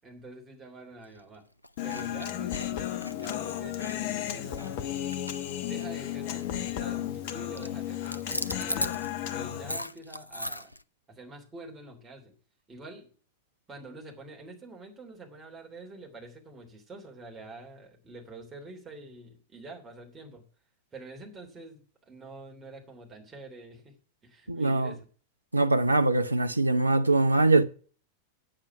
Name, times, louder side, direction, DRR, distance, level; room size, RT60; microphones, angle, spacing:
voice 1, 0.0-1.4 1.8-5.0 5.6-8.9 9.3-10.7 11.1-12.3 12.7-13.1 13.7-20.4 20.9-23.9 24.2-25.1, right 2 dB, 15° right, 3.1 m, -46 dB
sound 1, 1.0-1.2 1.6-6.1 6.3-6.6 6.9-7.3 7.5-10.8, left 1 dB, 85° left, 0.4 m, -38 dB
Human voice, 1.8-9.8, left 11 dB, 50° left, 1.0 m, -34 dB
voice 2, 24.5-24.9 25.5-27.6, right 2 dB, 85° right, 0.7 m, -23 dB
8.8 x 7.7 x 5.9 m
figure-of-eight pair, 90°, 0 cm